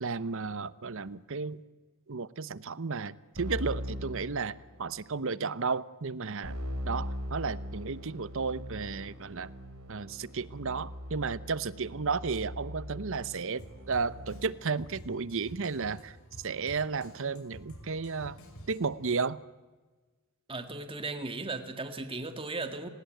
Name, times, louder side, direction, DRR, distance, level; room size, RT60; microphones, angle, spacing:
voice 1, 0.0-1.6 2.1-6.6 6.8-9.5 9.9-18.4 18.7-19.4, right 4 dB, 65° right, 17 dB, 0.8 m, -33 dB
Keyboard (musical), 3.4-5.0 6.4-14.8, equal, 80° right, 3.7 m, -40 dB
Drum kit, 13.6-19.1, equal, 65° left, 6.1 m, -50 dB
voice 2, 20.5-22.9, right 3 dB, 25° right, 8 dB, 1.9 m, -36 dB
29.0 x 20.0 x 9.2 m, 1.3 s
head